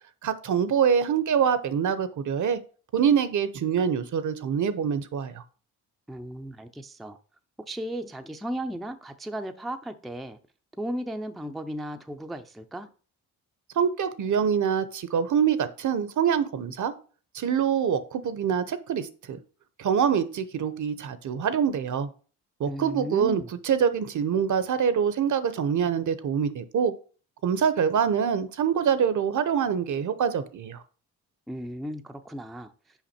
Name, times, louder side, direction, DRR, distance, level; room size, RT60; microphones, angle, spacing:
voice 1, 0.2-2.6 2.9-5.4 13.8-16.9 17.3-19.4 19.8-22.1 22.6-26.9 27.4-30.8, right 7 dB, 50° right, 0.8 m, -25 dB
voice 2, 6.1-7.2 7.7-10.4 10.8-12.9 22.7-23.5 31.5-32.7, equal, ahead, 0.5 m, -35 dB
5.9 x 5.1 x 4.3 m
cardioid pair, 85°, 38 cm